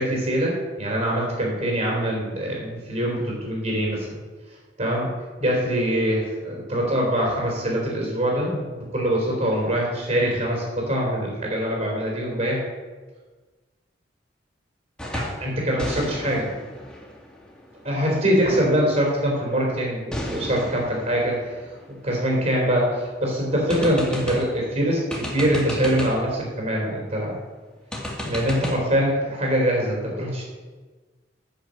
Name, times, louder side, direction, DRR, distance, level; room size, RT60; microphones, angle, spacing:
voice 1, 0.0-4.2 4.8-5.1 5.4-12.6 15.1-16.6 17.8-21.6 22.0-27.3 28.2-30.4, equal, 45° right, -2 dB, 3.2 m, -24 dB
sound 1, 15.0-15.5 15.8-18.4 20.1-22.8 23.2-23.3 23.7-24.6 25.1-26.3 27.9-28.8, equal, 5° left, 2.1 m, -34 dB
9.4 x 6.7 x 7.5 m, 1.3 s
head